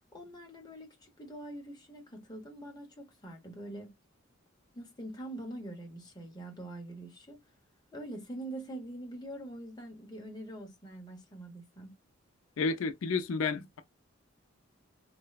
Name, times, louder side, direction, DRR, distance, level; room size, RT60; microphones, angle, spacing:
voice 1, 0.1-3.9 4.7-7.4 7.9-11.9, right 1 dB, 20° left, 0.8 m, -44 dB
voice 2, 12.6-13.8, left 4 dB, 85° left, 0.4 m, -31 dB
3.1 x 2.0 x 2.3 m
head